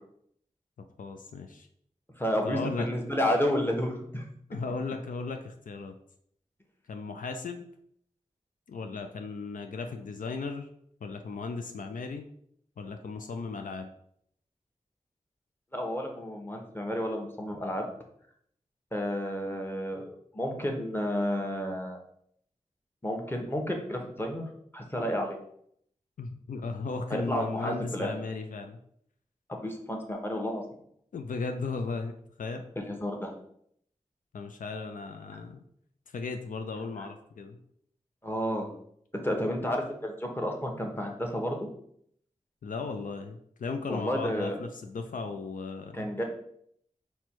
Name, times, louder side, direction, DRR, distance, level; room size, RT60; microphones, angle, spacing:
voice 1, 1.0-1.7 2.4-2.9 4.5-6.0 6.9-7.7 8.7-10.7 11.0-12.2 12.8-13.9 26.2-28.8 31.1-32.1 32.4-32.6 34.3-35.6 36.1-37.6 42.6-46.1, left 4 dB, 80° left, 5 dB, 0.4 m, -36 dB
voice 2, 2.2-4.2 15.7-17.9 18.9-22.0 23.0-25.4 27.1-28.1 29.5-30.6 32.8-33.3 37.0-37.1 38.2-38.7 39.2-41.7 43.9-44.6 45.9-46.2, equal, 15° left, 2 dB, 1.0 m, -31 dB
4.3 x 2.3 x 4.4 m, 0.68 s
cardioid pair, 45°, 13 cm